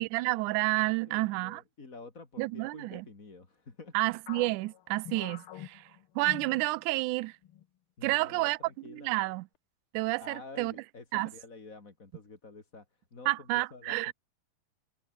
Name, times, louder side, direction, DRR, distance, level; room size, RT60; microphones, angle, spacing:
voice 1, 0.0-1.6 2.4-3.1 3.9-5.8 6.2-7.3 8.0-8.6 8.9-9.5 9.9-10.7 11.1-11.3 13.3-14.1, right 21 dB, 80° right, 1.9 m, -30 dB
voice 2, 1.0-4.0 8.0-9.2 10.2-14.1, left 3 dB, 25° left, 3.1 m, -49 dB
sound 1, 4.3-7.1 7.4-7.6 8.3-8.7, left 11 dB, 80° left, 1.2 m, -46 dB
omnidirectional pair, 3.9 m